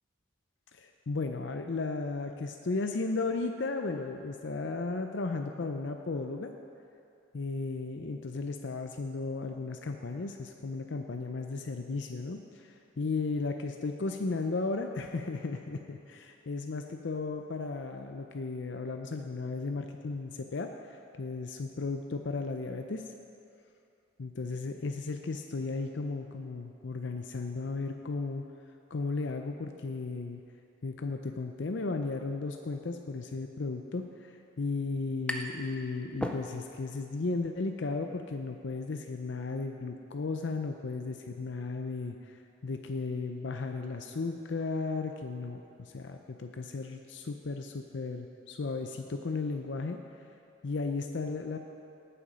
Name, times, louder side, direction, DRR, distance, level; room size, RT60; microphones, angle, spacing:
voice 1, 0.7-6.5 7.3-20.7 21.2-23.0 24.2-28.4 28.9-30.4 30.8-42.4 42.6-50.0 50.6-51.6, left 3 dB, 70° left, 5 dB, 0.6 m, -35 dB
sound 1, 35.3-35.7 36.0-36.9, left 1 dB, 5° left, 0.5 m, -37 dB
18.5 x 7.1 x 5.1 m, 2.6 s
head